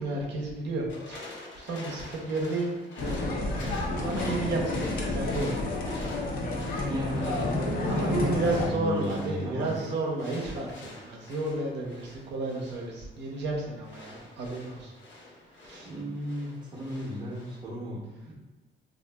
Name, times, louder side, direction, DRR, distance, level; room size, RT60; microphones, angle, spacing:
voice 1, 0.0-3.5 3.9-5.5 7.9-14.9 15.7-15.9, right 2 dB, 70° right, -2 dB, 0.7 m, -32 dB
sound 1, 0.9-17.6, left 2 dB, 75° left, 1.0 m, -47 dB
sound 2, 3.0-8.7, left 2 dB, 50° left, 0.6 m, -30 dB
voice 2, 6.9-7.6 8.0-9.7 15.8-18.3, equal, 25° right, -5 dB, 0.7 m, -35 dB
3.6 x 2.5 x 2.2 m, 1.2 s
cardioid pair, 150°, 19 cm